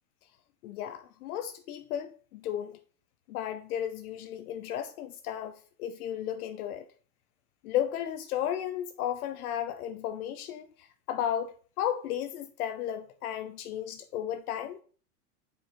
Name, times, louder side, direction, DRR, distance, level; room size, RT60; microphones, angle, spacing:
voice 1, 0.6-2.8 3.3-6.9 7.6-14.8, left 10 dB, 70° left, 0.7 m, -34 dB
6.1 x 4.9 x 3.2 m
supercardioid pair, 130°, 45 cm